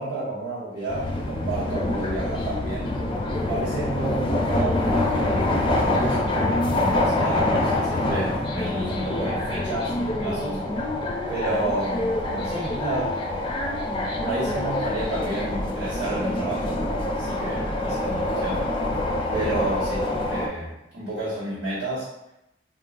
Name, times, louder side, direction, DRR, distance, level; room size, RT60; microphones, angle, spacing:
voice 1, 0.0-3.0 3.5-10.8 11.3-13.2 14.2-16.9 17.1-18.7 19.3-22.1, right 2 dB, 75° right, -11 dB, 1.0 m, -31 dB
sound 1, 0.9-20.5, left 1 dB, 30° left, 0.4 m, -26 dB
3.7 x 2.3 x 2.4 m, 0.89 s
head